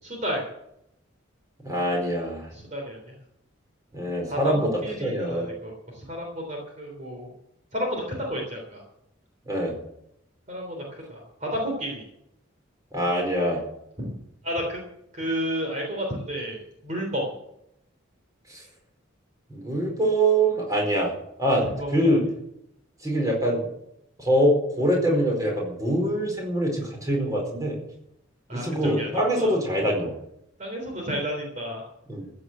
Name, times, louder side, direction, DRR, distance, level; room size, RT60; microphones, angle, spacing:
voice 1, 0.0-0.5 2.5-3.1 4.3-4.5 4.8-7.3 7.7-8.8 10.5-12.0 14.0-14.2 14.4-14.8 15.1-17.3 21.6-22.2 28.5-29.1 29.4-29.5 30.6-31.8, equal, 35° right, 0 dB, 3.4 m, -31 dB
voice 2, 1.6-2.5 3.9-4.7 5.0-5.5 9.4-9.8 12.9-13.6 18.5-18.6 19.5-21.1 21.4-22.2 23.0-23.7 24.2-27.8 28.5-30.1 32.1-32.2, right 1 dB, 15° right, 0 dB, 4.6 m, -24 dB
15.0 x 8.5 x 7.6 m, 0.79 s
head